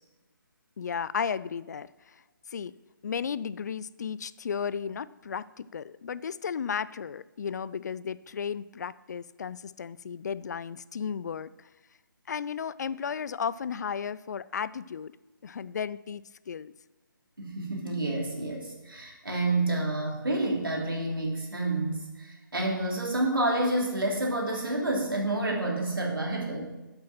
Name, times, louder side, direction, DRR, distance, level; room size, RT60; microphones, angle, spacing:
voice 1, 0.8-2.2 2.5-2.7 3.0-11.7 12.3-15.1 15.4-16.7, left 7 dB, 55° left, 18 dB, 0.4 m, -34 dB
voice 2, 17.4-26.7, right 2 dB, 90° right, -1 dB, 3.2 m, -29 dB
8.3 x 7.8 x 5.9 m, 1.1 s
figure-of-eight pair, 145°, 11 cm